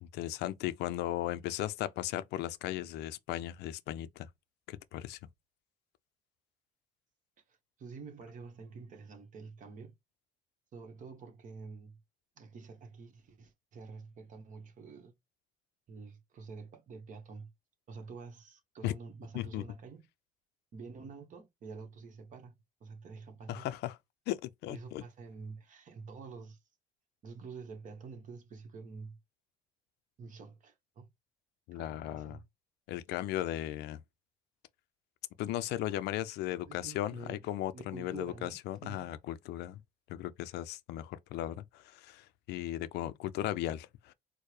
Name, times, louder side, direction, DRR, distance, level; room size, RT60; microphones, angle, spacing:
voice 1, 0.0-4.3 4.7-5.2 18.8-18.9 19.3-19.6 23.5-24.0 24.3-25.0 31.7-32.4 32.9-34.0 35.4-39.8 40.1-44.1, left 13 dB, 80° left, 0.5 m, -36 dB
voice 2, 7.5-9.9 10.7-12.0 12.4-15.1 15.9-17.5 17.9-20.0 20.7-22.5 22.8-23.7 24.7-26.6 27.2-29.2 30.2-31.1 31.7-32.4 36.7-37.4 37.7-39.2, right 4 dB, 50° right, 1.0 m, -48 dB
4.4 x 2.1 x 3.2 m
cardioid pair, 110°, 17 cm